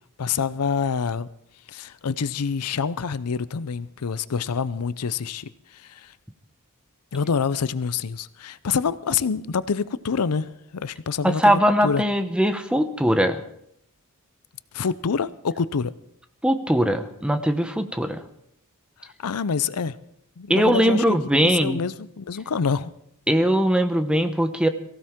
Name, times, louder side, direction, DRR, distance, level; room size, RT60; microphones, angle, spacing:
voice 1, 0.2-1.3 1.7-6.1 7.1-12.0 14.7-15.9 19.0-20.0 20.4-22.9, left 5 dB, 90° left, 0.6 m, -27 dB
voice 2, 11.2-13.4 16.4-18.2 20.5-21.8 23.3-24.7, equal, 5° right, 0.9 m, -20 dB
23.0 x 15.5 x 3.7 m
head